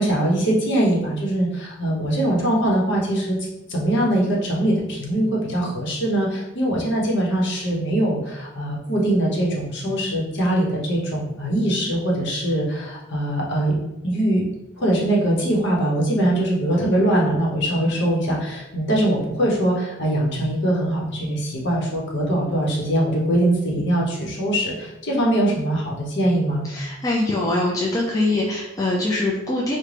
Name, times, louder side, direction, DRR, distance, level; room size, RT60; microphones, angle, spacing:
voice 1, 0.0-3.4 3.7-13.7 14.0-14.4 14.8-26.7, right 1 dB, 60° left, -2 dB, 0.9 m, -22 dB
voice 2, 26.7-29.8, left 2 dB, 15° left, -3 dB, 0.3 m, -23 dB
3.7 x 2.1 x 3.2 m, 0.94 s
head